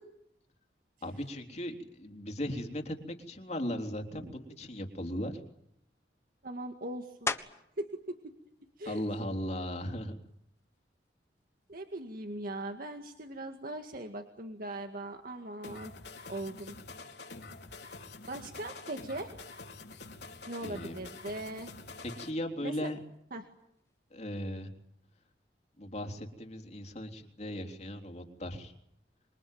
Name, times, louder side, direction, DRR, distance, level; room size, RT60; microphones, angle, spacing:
voice 1, 1.0-5.4 8.8-10.1 20.6-21.0 22.0-23.0 24.1-24.7 25.8-28.7, left 1 dB, 40° left, 5 dB, 3.5 m, -37 dB
voice 2, 6.4-7.3 7.8-7.9 8.8-9.0 11.7-15.9 16.3-16.8 18.3-19.3 20.5-21.7 22.6-22.9 23.3-23.4, right 1 dB, 55° right, 5 dB, 2.1 m, -40 dB
sound 1, 7.3-7.9 8.4-12.8 13.4-18.5 18.8-24.5, left 3 dB, 15° left, 1.4 m, -46 dB
sound 2, 15.6-22.3, left 3 dB, 70° left, 4.2 m, -47 dB
27.0 x 23.0 x 9.3 m, 0.78 s
head